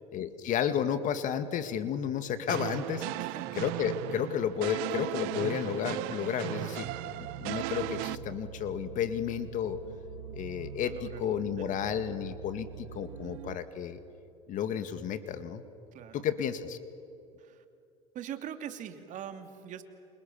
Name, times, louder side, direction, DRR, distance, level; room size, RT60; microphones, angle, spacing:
voice 1, 0.1-3.0 3.5-9.8 10.3-14.0 14.5-15.6 16.1-16.8, left 8 dB, 50° left, 10 dB, 2.1 m, -32 dB
sound 1, 2.5-8.2, right 19 dB, 70° right, 0.9 m, -36 dB
voice 2, 3.0-3.5 10.8-11.2 11.6-11.8 15.9-16.1 17.4-17.6 18.1-19.8, right 9 dB, 50° right, 7 dB, 2.7 m, -42 dB
sound 2, 6.8-13.6, right 8 dB, 90° right, 2.3 m, -45 dB
29.0 x 27.0 x 7.2 m, 2.6 s
supercardioid pair, 95°, 17 cm